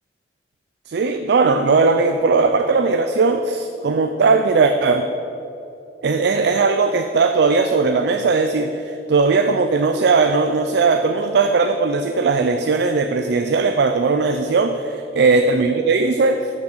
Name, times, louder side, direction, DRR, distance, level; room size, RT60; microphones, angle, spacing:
voice 1, 0.9-5.1 6.0-16.5, right 4 dB, 65° right, 7 dB, 0.4 m, -18 dB
7.0 x 6.6 x 7.1 m, 2.8 s
head